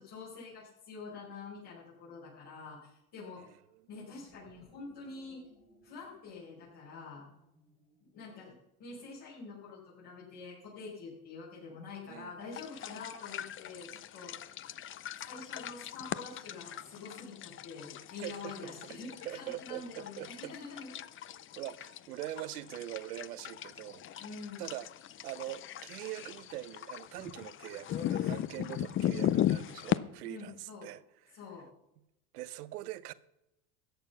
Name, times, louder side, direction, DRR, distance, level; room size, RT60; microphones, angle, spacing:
voice 1, 0.0-3.4 3.9-5.4 5.8-7.2 8.1-8.5 8.8-14.3 15.2-20.9 24.2-24.7 28.5-28.8 30.2-30.9 31.3-31.7, left 4 dB, 60° left, 5.4 m, -46 dB
voice 2, 3.4-3.9 12.1-12.3 18.2-18.7 19.3-20.5 21.6-24.3 24.6-24.9 25.2-31.4 32.3-33.1, right 15 dB, 90° right, 0.7 m, -43 dB
sound 1, 3.9-8.5, equal, 85° left, 6.2 m, -65 dB
sound 2, 12.5-30.0, left 11 dB, 30° left, 0.5 m, -38 dB
13.5 x 8.4 x 5.7 m
hypercardioid pair, 90°, 45 cm